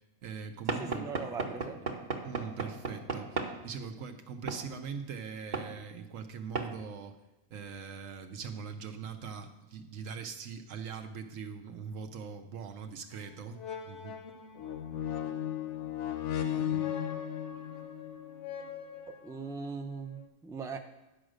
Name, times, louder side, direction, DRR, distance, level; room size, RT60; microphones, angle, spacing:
voice 1, 0.2-1.1 2.2-7.2 7.5-14.2 16.6-16.8, right 6 dB, 90° right, 7 dB, 1.2 m, -42 dB
Knock / Wood, 0.7-3.6 4.5-4.7 5.5-5.7 6.5-6.7, right 4 dB, 40° right, 0.9 m, -35 dB
voice 2, 0.8-1.8 19.1-20.8, right 4 dB, 5° right, 5 dB, 0.3 m, -40 dB
sound 1, 13.1-13.3 13.6-19.5 20.2-20.3, left 10 dB, 65° left, 1.0 m, -36 dB
10.5 x 5.0 x 6.4 m, 1.0 s
omnidirectional pair, 1.3 m